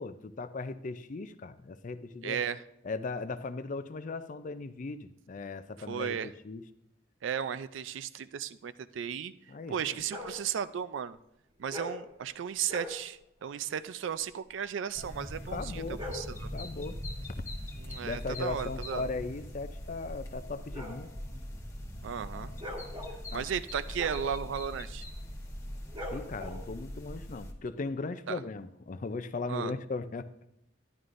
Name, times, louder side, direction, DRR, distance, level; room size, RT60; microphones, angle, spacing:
voice 1, 0.0-2.4 2.8-6.7 9.5-10.0 15.5-16.0 16.5-17.0 18.0-21.1 23.3-23.4 26.1-30.5, left 3 dB, 40° left, 13 dB, 0.4 m, -38 dB
voice 2, 2.2-2.6 5.9-6.3 7.2-9.3 9.7-11.2 11.6-16.5 17.8-19.1 22.0-22.5 23.3-25.0 28.3-28.4 29.5-29.7, right 8 dB, 75° right, 13 dB, 0.4 m, -35 dB
sound 1, 10.0-10.4 11.6-12.1 12.6-13.0 15.7-16.4 18.9-27.0, left 1 dB, 25° right, 1.2 m, -43 dB
sound 2, 14.9-27.5, equal, 15° left, 1.1 m, -41 dB
11.0 x 11.0 x 2.5 m, 0.80 s
head